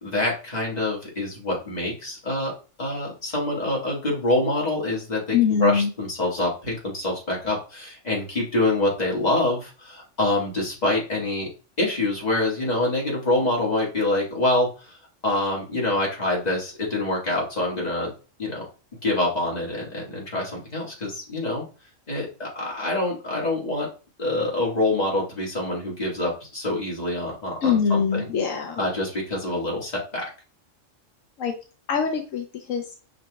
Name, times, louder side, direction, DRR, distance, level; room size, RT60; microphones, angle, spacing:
voice 1, 0.0-2.5 2.8-11.5 11.8-15.0 15.2-18.1 18.4-18.7 19.0-21.7 22.1-23.9 24.2-28.2 28.8-30.3, left 2 dB, 30° left, -4 dB, 1.8 m, -26 dB
voice 2, 5.3-5.9 27.6-28.8 31.4-31.5 31.9-32.9, left 7 dB, 80° left, 4 dB, 1.1 m, -23 dB
5.7 x 3.9 x 2.3 m, 0.35 s
omnidirectional pair, 1.3 m